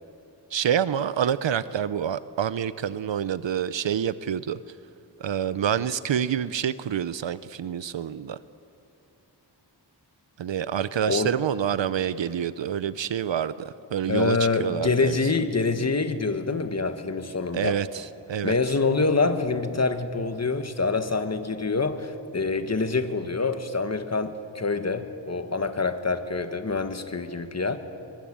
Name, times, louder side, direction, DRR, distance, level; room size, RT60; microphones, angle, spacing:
voice 1, 0.5-4.6 5.2-8.4 10.4-15.2 17.5-18.5, right 9 dB, 80° right, 15 dB, 0.7 m, -27 dB
voice 2, 14.1-17.8 18.4-27.8, left 4 dB, 35° left, 8 dB, 1.5 m, -26 dB
23.0 x 23.0 x 8.7 m, 2.7 s
wide cardioid pair, 110°, 44 cm